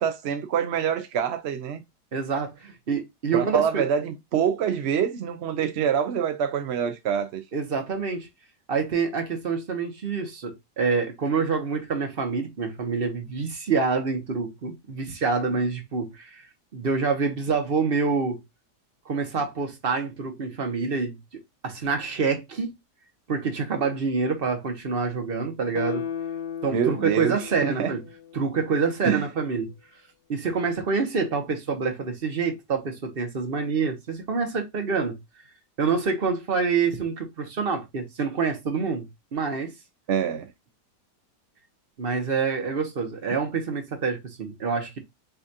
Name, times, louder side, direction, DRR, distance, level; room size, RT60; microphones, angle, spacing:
voice 1, 0.0-1.8 3.3-7.4 26.7-27.4 27.6-27.9 29.0-29.2 40.1-40.5, right 8 dB, 75° right, 0.6 m, -25 dB
voice 2, 2.1-3.8 7.5-8.3 8.7-16.4 16.7-18.4 19.1-21.2 21.6-22.8 23.3-26.0 26.6-28.0 28.3-29.7 30.3-35.2 35.8-39.7 42.0-45.0, right 5 dB, 40° right, 1.0 m, -27 dB
Guitar, 25.7-29.0 29.4-29.5, left 8 dB, 75° left, 1.3 m, -36 dB
6.6 x 2.5 x 2.7 m
omnidirectional pair, 1.8 m